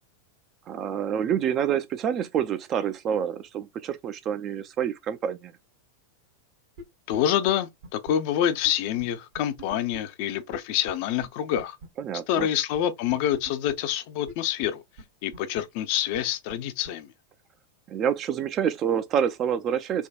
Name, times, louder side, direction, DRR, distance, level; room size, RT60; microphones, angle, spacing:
voice 1, 0.7-5.5 12.0-12.5 17.9-20.1, right 8 dB, 30° right, 0.4 m, -27 dB
sound 1, 6.8-6.9 7.1-7.2 7.5-7.6 7.8-8.1 8.6-8.7 9.0-9.1 9.3-10.0 10.5-10.6 10.9-11.0 11.2-11.3 11.6-11.9 12.4-12.5 12.7-12.8 13.1-13.7 14.3-14.4 14.6-14.7 15.0-15.1 15.3-15.6 16.1-16.2 16.5-16.6 16.8-16.9, right 2 dB, 55° right, 1.0 m, -41 dB
voice 2, 7.1-11.8 12.3-14.8 15.2-17.1, left 10 dB, 45° left, 0.4 m, -27 dB
3.4 x 2.2 x 2.5 m
figure-of-eight pair, 90°, 0 cm